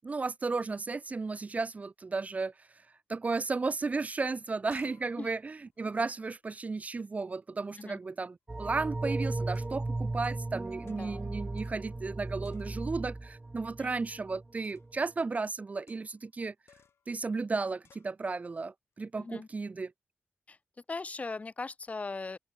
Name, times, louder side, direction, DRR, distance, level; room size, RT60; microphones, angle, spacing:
voice 1, 0.0-2.7 3.1-16.5 17.1-19.9, right 4 dB, 35° right, 0.8 m, -34 dB
sound 1, 3.9-4.0 4.3-7.0 7.7-8.1 8.8-9.1 9.5-10.6 10.9-11.2 11.6-12.2 12.4-13.0 14.6-15.0 15.9-16.3 16.7-17.1 17.8-18.1, left 7 dB, 80° left, 2.4 m, -63 dB
sound 2, 8.5-14.5 14.8-14.9, right 2 dB, 20° right, 0.4 m, -36 dB
voice 2, 10.8-11.4 13.8-13.9 19.2-19.5 20.5-20.6 20.9-22.4, left 3 dB, 35° left, 1.9 m, -39 dB
open air
wide cardioid pair, 120°, 4 cm